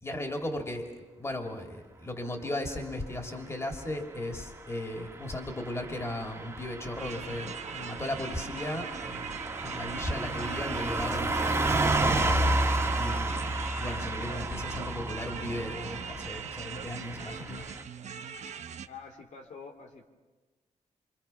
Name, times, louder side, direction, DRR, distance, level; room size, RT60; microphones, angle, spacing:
voice 1, 0.0-9.3 9.6-12.2 13.0-17.6, left 1 dB, 20° left, 3 dB, 3.1 m, -36 dB
Car passing by / Truck, 4.8-17.8, right 2 dB, 20° right, 2.1 m, -31 dB
sound 1, 7.0-18.9, right 7 dB, 70° right, 1.0 m, -41 dB
voice 2, 18.9-20.1, left 5 dB, 85° left, 3 dB, 3.1 m, -46 dB
27.0 x 26.0 x 5.9 m, 1.3 s
wide cardioid pair, 130°, 12 cm